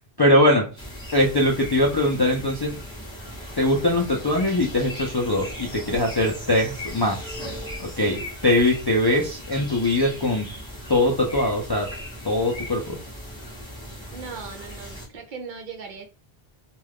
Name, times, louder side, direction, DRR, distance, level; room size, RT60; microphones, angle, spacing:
voice 1, 0.2-0.7 1.1-2.7 3.6-7.4 7.8-8.2 8.4-10.5 10.9-11.9 12.2-13.0, left 1 dB, 40° left, -2 dB, 0.3 m, -21 dB
sound 1, 0.8-15.1, equal, 5° left, 0.9 m, -38 dB
voice 2, 8.0-8.3 14.1-16.1, right 5 dB, 60° right, 3 dB, 0.6 m, -38 dB
2.3 x 2.3 x 3.3 m, 0.34 s
omnidirectional pair, 1.1 m